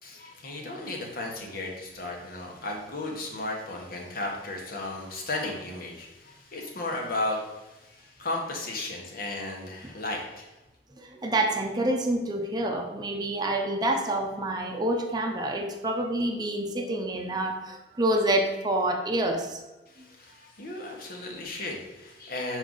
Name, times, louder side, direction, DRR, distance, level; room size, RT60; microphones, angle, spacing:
voice 1, 0.0-10.5 19.9-22.6, left 2 dB, 60° left, 0 dB, 1.4 m, -35 dB
voice 2, 11.0-19.6, right 1 dB, 25° right, 2 dB, 0.7 m, -27 dB
6.7 x 4.6 x 3.9 m, 1.1 s
head